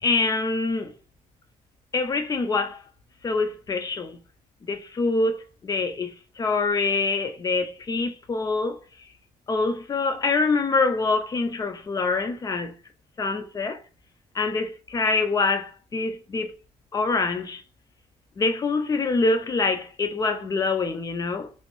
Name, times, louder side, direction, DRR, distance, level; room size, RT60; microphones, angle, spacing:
voice 1, 0.0-0.9 1.9-2.8 3.2-4.2 4.6-8.8 9.5-12.7 13.2-13.8 14.3-16.5 16.9-17.6 18.4-21.5, left 3 dB, 30° left, 0.4 m, -25 dB
3.0 x 2.5 x 2.9 m
cardioid pair, 115°, 13 cm